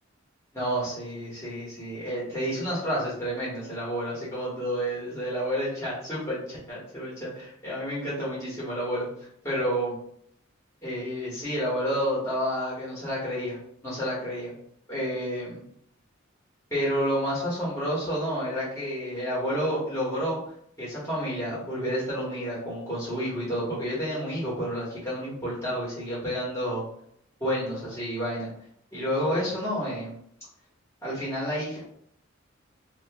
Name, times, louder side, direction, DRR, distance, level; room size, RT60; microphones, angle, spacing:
voice 1, 0.5-9.1 9.4-9.9 10.8-13.6 13.8-14.5 14.9-15.6 16.7-20.4 20.8-26.8 27.4-28.5 28.9-30.1 31.0-31.8, equal, 15° left, -8 dB, 1.2 m, -30 dB
2.8 x 2.4 x 3.4 m, 0.69 s
head